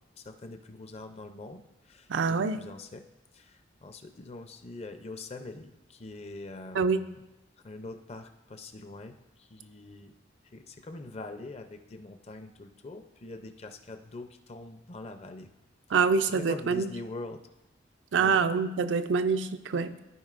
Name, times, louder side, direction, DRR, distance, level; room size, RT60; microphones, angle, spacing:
voice 1, 0.2-3.0 3.3-7.2 7.6-10.1 10.5-15.5 16.4-17.4 18.2-18.4, left 2 dB, 35° left, 7 dB, 0.5 m, -43 dB
voice 2, 2.1-2.6 6.7-7.0 15.9-16.9 18.1-19.9, right 5 dB, 80° right, 10 dB, 0.4 m, -25 dB
14.0 x 4.8 x 2.5 m, 0.93 s
head